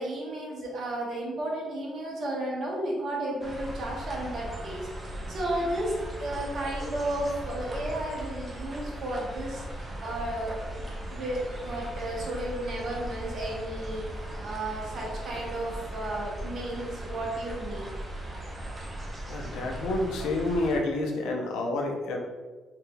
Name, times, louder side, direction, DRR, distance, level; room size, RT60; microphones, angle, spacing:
voice 1, 0.0-4.9 5.3-5.9 6.2-9.6 10.0-14.1 14.4-17.9, right 1 dB, 60° right, -3 dB, 1.0 m, -33 dB
sound 1, 3.4-20.8, right 1 dB, 30° right, 0.8 m, -38 dB
voice 2, 19.3-22.2, left 2 dB, 85° left, 1 dB, 0.6 m, -29 dB
3.9 x 3.0 x 2.2 m, 1.4 s
cardioid pair, 90°, 0 cm